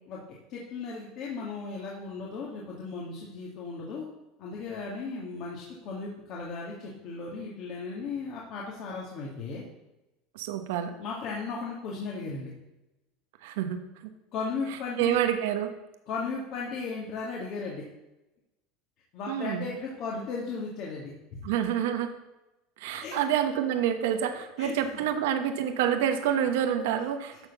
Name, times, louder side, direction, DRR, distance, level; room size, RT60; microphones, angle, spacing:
voice 1, 0.5-4.1 4.4-9.6 11.0-12.5 14.3-15.2 16.1-17.8 19.1-21.4 23.0-23.2 24.6-25.0, left 4 dB, 55° left, -4 dB, 2.0 m, -36 dB
voice 2, 10.3-10.9 13.4-13.8 15.0-15.7 19.3-19.7 21.4-22.1 22.8-27.5, right 9 dB, 80° right, 7 dB, 1.1 m, -27 dB
12.5 x 4.4 x 7.1 m, 0.98 s
supercardioid pair, 120°, 0 cm